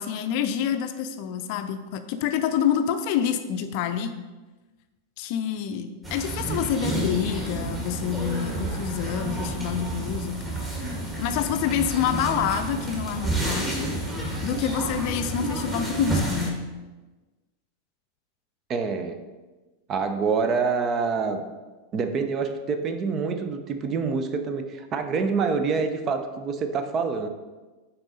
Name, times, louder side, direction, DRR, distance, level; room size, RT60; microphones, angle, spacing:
voice 1, 0.0-4.1 5.2-10.7 11.2-13.9 14.4-16.6, left 8 dB, 45° left, 8 dB, 0.5 m, -27 dB
sound 1, 6.0-16.5, right 1 dB, 15° right, 1.8 m, -30 dB
voice 2, 18.7-19.2 19.9-21.4 21.9-27.3, right 5 dB, 30° right, 8 dB, 0.6 m, -26 dB
8.9 x 4.2 x 4.0 m, 1.2 s
figure-of-eight pair, 90°, 0 cm